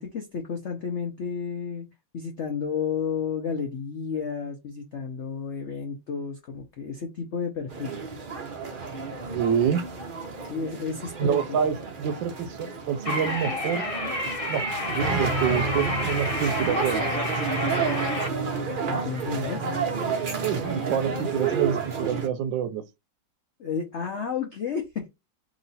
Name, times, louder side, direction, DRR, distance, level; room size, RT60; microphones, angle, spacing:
voice 1, 0.0-1.9 2.1-8.0 10.5-11.8 15.5-15.6 18.9-19.7 23.6-25.1, left 6 dB, 70° left, 0.6 m, -32 dB
sound 1, 7.7-22.3, right 4 dB, 60° right, 0.5 m, -30 dB
voice 2, 9.3-9.8 11.2-13.8 14.5-17.1 20.4-22.8, right 8 dB, 75° right, 1.2 m, -27 dB
sound 2, 13.0-18.3, left 1 dB, 25° left, 0.9 m, -30 dB
3.0 x 3.0 x 4.0 m
omnidirectional pair, 2.1 m